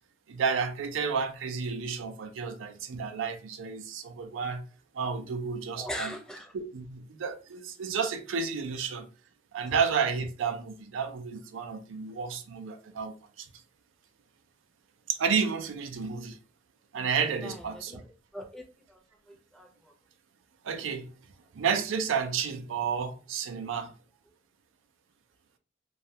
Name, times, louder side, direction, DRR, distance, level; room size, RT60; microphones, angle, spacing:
voice 1, 0.3-4.6 4.9-6.1 6.5-9.1 9.5-13.5 15.1-16.4 16.9-18.0 20.6-21.1 21.5-23.9, right 6 dB, 85° right, 0.4 m, -31 dB
voice 2, 5.8-6.5 17.0-17.1 17.4-18.0 18.3-18.6 18.9-19.0 19.5-19.9, equal, 5° left, 0.4 m, -40 dB
2.3 x 2.0 x 2.7 m
head